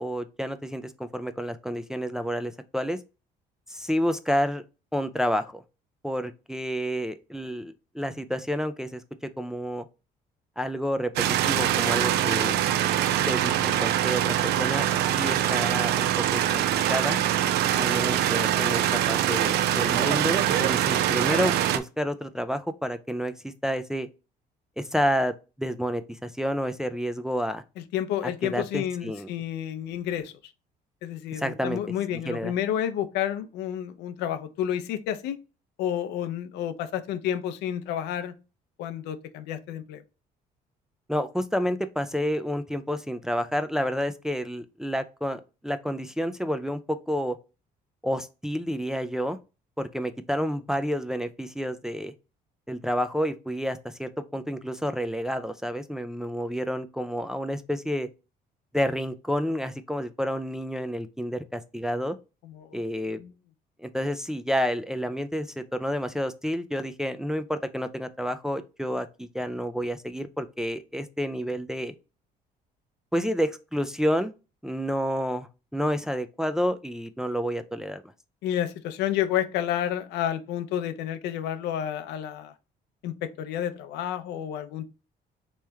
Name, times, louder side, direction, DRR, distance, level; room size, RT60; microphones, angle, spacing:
voice 1, 0.0-3.0 3.7-4.6 4.9-5.6 6.0-9.0 9.4-9.9 10.6-11.1 11.4-12.6 13.3-14.9 15.2-16.6 16.9-17.2 17.8-24.1 24.8-27.6 28.2-29.3 31.3-31.8 32.3-32.5 41.1-47.4 48.0-49.4 49.8-52.1 52.7-58.1 58.7-62.2 62.7-63.2 63.8-71.9 73.1-74.3 74.6-78.0, equal, 5° right, 0.3 m, -29 dB
sound 1, 11.2-21.8, right 11 dB, 75° right, 0.4 m, -24 dB
voice 2, 27.9-30.4 31.0-35.4 35.8-38.3 38.8-40.0 62.4-62.9 63.1-63.3 78.4-82.5 83.0-84.9, left 10 dB, 85° left, 0.5 m, -30 dB
3.2 x 3.0 x 3.4 m
cardioid pair, 110°, 17 cm